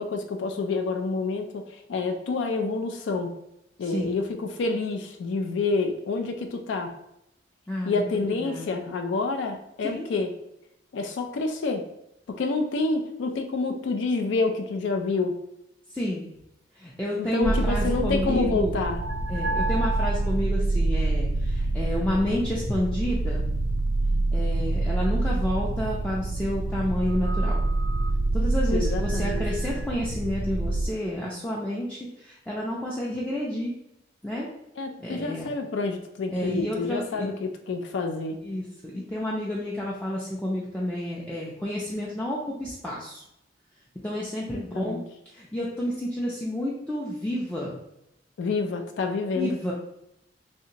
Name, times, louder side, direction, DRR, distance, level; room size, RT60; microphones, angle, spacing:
voice 1, 0.0-3.3 3.8-6.9 7.9-10.3 10.9-11.8 12.3-15.4 17.2-19.0 28.7-29.4 34.8-38.4 44.5-45.0 48.4-49.6, left 3 dB, 80° left, 5 dB, 0.4 m, -28 dB
voice 2, 7.7-8.1 8.4-8.8 9.8-10.1 15.9-16.3 16.8-18.8 19.3-23.5 24.3-27.6 28.3-33.7 34.2-34.5 35.0-35.5 36.3-37.3 38.4-38.6 38.9-43.2 44.0-45.0 45.3-47.8 49.4-49.7, left 1 dB, 5° left, -5 dB, 0.4 m, -30 dB
sound 1, 17.4-30.9, right 2 dB, 75° right, 0.3 m, -26 dB
3.2 x 2.7 x 2.8 m, 0.83 s
head